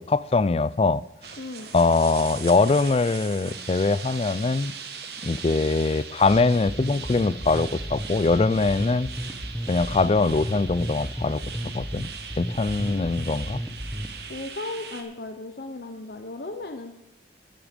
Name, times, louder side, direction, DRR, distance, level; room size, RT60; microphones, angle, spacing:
voice 1, 0.1-1.0 1.7-4.7 5.2-9.1 9.7-11.4 11.7-12.1 12.4-13.6, left 3 dB, 35° left, 18 dB, 0.4 m, -22 dB
sound 1, 1.2-15.0, right 6 dB, 70° right, 1.6 m, -40 dB
voice 2, 1.4-1.7 12.9-13.2 14.3-16.9, left 2 dB, 60° left, 6 dB, 0.8 m, -36 dB
sound 2, 6.3-14.3, equal, ahead, 1.0 m, -33 dB
12.5 x 11.0 x 5.2 m, 0.87 s
head